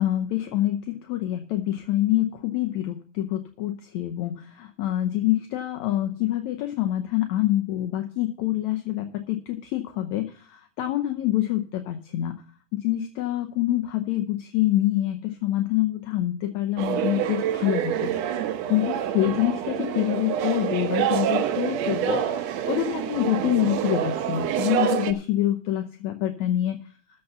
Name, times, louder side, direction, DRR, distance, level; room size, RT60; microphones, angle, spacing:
voice 1, 0.0-12.3 12.7-18.1 18.7-26.8, left 14 dB, 75° left, 5 dB, 2.0 m, -26 dB
sound 1, 16.8-25.1, right 10 dB, 70° right, 1.8 m, -27 dB
14.0 x 5.6 x 6.7 m, 0.43 s
omnidirectional pair, 3.5 m